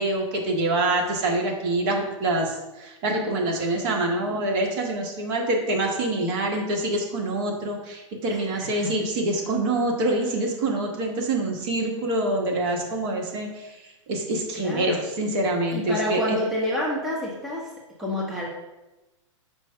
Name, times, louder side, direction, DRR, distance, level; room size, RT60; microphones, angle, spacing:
voice 1, 0.0-16.4, right 2 dB, 40° right, 1 dB, 1.3 m, -26 dB
voice 2, 8.3-8.9 14.5-15.0 15.7-17.7 18.0-18.5, left 1 dB, ahead, -5 dB, 1.0 m, -28 dB
5.3 x 3.2 x 5.5 m, 1.0 s
hypercardioid pair, 140°, 17 cm